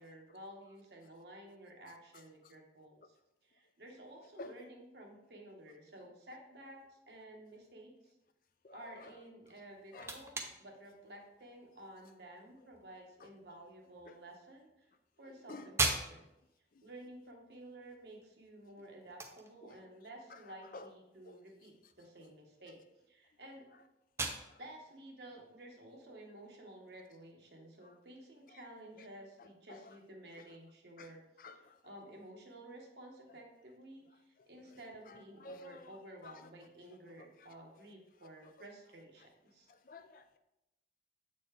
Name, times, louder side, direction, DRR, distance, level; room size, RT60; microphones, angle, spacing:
voice 1, 0.0-3.2 3.4-8.1 8.7-14.9 15.2-16.2 16.8-22.8 23.1-23.6 24.6-31.2 31.5-39.7, right 1 dB, 70° right, 1 dB, 1.2 m, -53 dB
voice 2, 8.6-9.1 9.9-10.1 13.2-13.3 14.1-14.2 15.5-15.7 19.6-19.8 20.7-20.9 21.3-21.4 29.7-29.8 31.0-31.1 31.4-31.8 35.4-35.8 36.2-36.3 39.9-40.4, left 2 dB, 50° left, 9 dB, 0.4 m, -49 dB
sound 1, 9.4-27.1, right 2 dB, 15° right, 0.5 m, -44 dB
7.5 x 4.2 x 3.3 m, 0.90 s
head